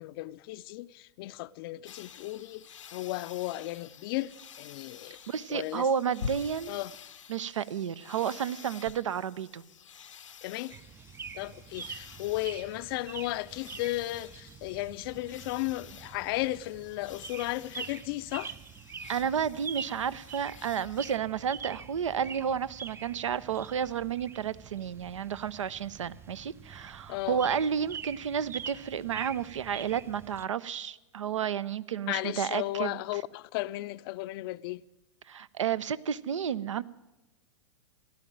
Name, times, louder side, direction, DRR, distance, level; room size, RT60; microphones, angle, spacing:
voice 1, 0.0-2.7 2.9-5.2 5.5-5.9 6.7-6.9 10.4-10.7 11.3-18.6 27.1-27.5 32.1-34.8, left 17 dB, 50° left, 0.4 m, -35 dB
sound 1, 1.9-21.2, left 7 dB, 85° left, 0.8 m, -48 dB
voice 2, 5.3-6.8 7.3-9.6 19.1-33.0 35.3-36.8, right 8 dB, 80° right, 0.6 m, -31 dB
sound 2, 10.7-30.5, right 6 dB, 15° right, 0.4 m, -45 dB
15.0 x 11.5 x 7.4 m
hypercardioid pair, 105°, 16 cm